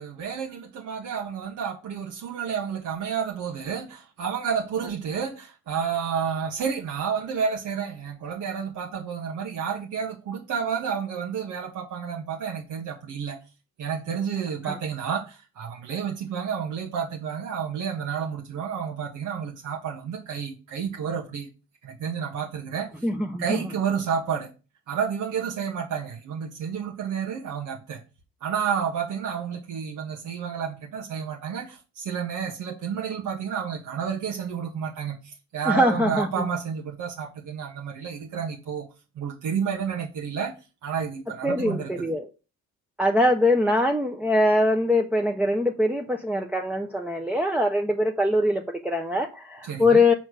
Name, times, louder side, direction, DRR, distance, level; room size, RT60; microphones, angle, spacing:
voice 1, 0.0-13.4 13.8-21.5 21.8-22.9 23.4-24.5 24.9-28.0 28.4-38.9 39.1-40.5 40.8-41.9 49.6-50.0, right 7 dB, 75° right, 1.6 m, -30 dB
voice 2, 23.0-23.7 35.6-36.5 41.4-42.3 43.0-50.1, left 1 dB, 5° right, 0.9 m, -23 dB
6.3 x 4.4 x 6.3 m
cardioid pair, 90°, 30 cm